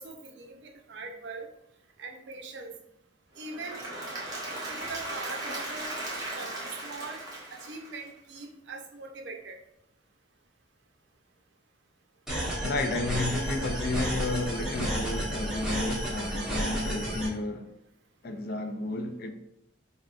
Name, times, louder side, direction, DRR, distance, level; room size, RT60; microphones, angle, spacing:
voice 1, 0.0-1.5 2.0-2.7 3.4-3.8 4.7-5.9 6.3-7.2 7.5-9.6, right 3 dB, 65° right, 0.6 m, -41 dB
Applause / Crowd, 3.4-8.4, right 1 dB, 20° right, 0.9 m, -37 dB
sound 1, 12.3-17.3, equal, 5° right, 1.2 m, -31 dB
voice 2, 12.6-17.7 18.2-19.3, left 2 dB, 50° left, 0.4 m, -32 dB
4.3 x 3.4 x 2.4 m
head